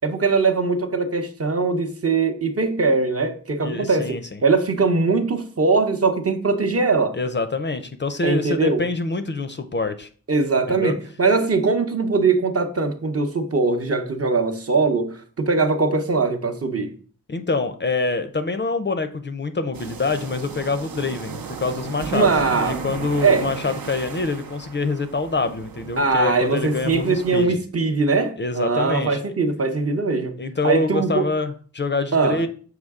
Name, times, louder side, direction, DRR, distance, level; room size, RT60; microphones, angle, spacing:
voice 1, 0.0-7.1 8.2-8.8 10.3-16.9 22.1-22.8 23.2-23.5 26.0-30.4 30.6-31.2 32.1-32.4, right 4 dB, 45° right, 0.7 m, -21 dB
voice 2, 3.6-4.4 7.1-10.1 10.7-10.9 17.3-27.6 28.4-29.2 30.4-32.5, left 3 dB, 35° left, 0.5 m, -25 dB
sound 1, 19.7-27.4, right 6 dB, 80° right, 0.8 m, -35 dB
6.5 x 4.7 x 3.5 m
wide cardioid pair, 120°, 35 cm